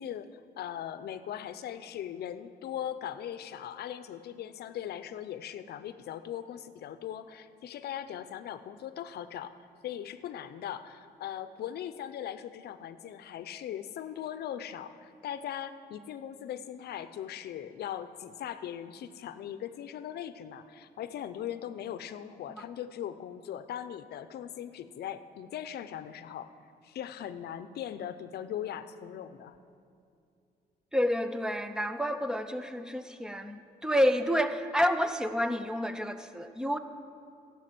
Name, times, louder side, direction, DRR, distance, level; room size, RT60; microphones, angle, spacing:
voice 1, 0.0-9.5 9.8-26.5 26.8-29.6, left 10 dB, 70° left, 12 dB, 0.6 m, -39 dB
voice 2, 30.9-36.8, equal, 5° right, 10 dB, 0.5 m, -29 dB
16.0 x 5.8 x 7.5 m, 2.5 s
cardioid pair, 130°, 17 cm